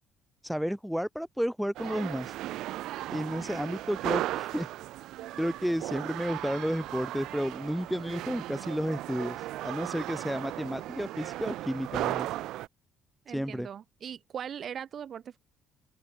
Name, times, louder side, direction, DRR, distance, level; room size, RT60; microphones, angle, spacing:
voice 1, 0.4-2.3 3.1-4.7 5.4-12.3 13.3-13.7, equal, ahead, 3.2 m, -32 dB
sound 1, 1.8-12.7, right 15 dB, 75° right, 2.0 m, -36 dB
voice 2, 13.3-15.4, right 8 dB, 50° right, 4.5 m, -40 dB
cardioid pair, 90°, 0 cm